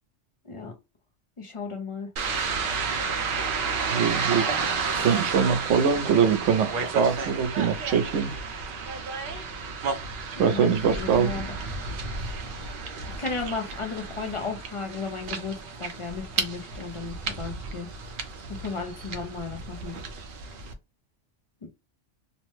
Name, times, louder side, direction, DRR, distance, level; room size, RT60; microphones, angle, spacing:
voice 1, 0.4-0.8 1.4-2.1 10.4-11.6 13.2-17.9 18.5-20.0 21.6-21.7, left 4 dB, 40° left, 0.4 m, -34 dB
sound 1, 2.2-20.7, right 4 dB, 55° right, 0.7 m, -32 dB
voice 2, 3.9-4.5 5.0-8.3 10.4-11.4, right 7 dB, 90° right, 1.0 m, -23 dB
2.9 x 2.1 x 3.0 m
omnidirectional pair, 1.2 m